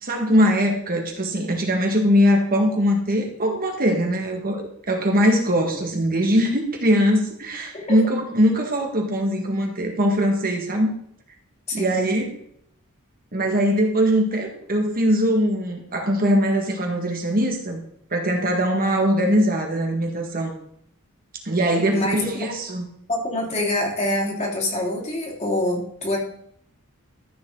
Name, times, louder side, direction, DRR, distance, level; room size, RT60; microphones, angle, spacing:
voice 1, 0.0-10.9 11.7-12.3 13.3-17.8 18.1-20.5 21.5-22.9, equal, 40° right, 2 dB, 1.9 m, -21 dB
voice 2, 21.9-22.5 23.1-26.2, left 1 dB, 30° left, -2 dB, 3.0 m, -25 dB
13.5 x 7.4 x 4.0 m, 0.68 s
head